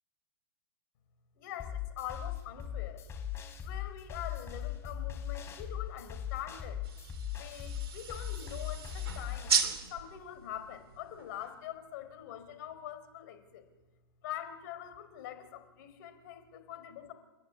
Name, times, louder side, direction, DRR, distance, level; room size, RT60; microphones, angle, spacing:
voice 1, 1.4-3.0 3.6-6.8 7.3-9.6 9.9-13.7 14.2-17.1, left 11 dB, 50° left, 10 dB, 3.9 m, -44 dB
sound 1, 1.6-9.6, left 10 dB, 20° left, 3.5 m, -39 dB
sound 2, 6.8-11.7, right 6 dB, 75° right, 2.7 m, -36 dB
29.5 x 11.5 x 8.7 m, 1.2 s
hypercardioid pair, 125°, 13 cm